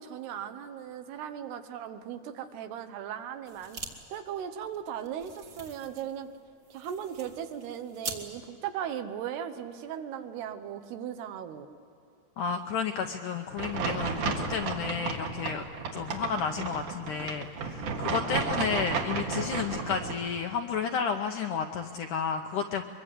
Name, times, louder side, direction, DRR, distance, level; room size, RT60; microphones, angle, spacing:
voice 1, 0.0-3.8 4.1-6.3 6.7-11.7, right 9 dB, 85° right, 8 dB, 3.1 m, -37 dB
sound 1, 3.5-3.9 4.2-4.3 4.6-8.2, right 4 dB, 35° right, 2.1 m, -43 dB
voice 2, 12.4-15.6 15.9-22.8, left 6 dB, 75° left, 4 dB, 1.9 m, -32 dB
sound 2, 13.6-20.1, right 4 dB, 60° right, 3.0 m, -33 dB
23.5 x 23.0 x 8.2 m, 2.7 s
omnidirectional pair, 4.6 m